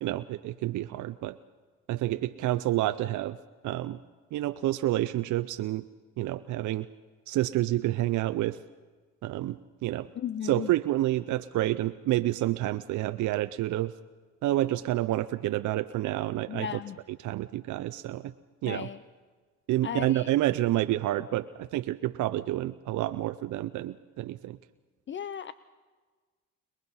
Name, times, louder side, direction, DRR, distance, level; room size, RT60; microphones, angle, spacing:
voice 1, 0.0-1.4 1.9-3.4 3.6-4.0 4.3-5.8 6.2-6.9 7.3-8.6 9.2-10.1 10.4-13.9 14.4-16.7 17.2-18.3 18.6-18.9 19.7-24.6, right 15 dB, 75° right, 11 dB, 0.5 m, -29 dB
voice 2, 10.2-10.7 16.5-17.0 18.7-19.0 19.8-20.3 25.1-25.5, left 9 dB, 40° left, 15 dB, 0.5 m, -35 dB
22.5 x 20.5 x 5.5 m, 1.4 s
cardioid pair, 90°, 30 cm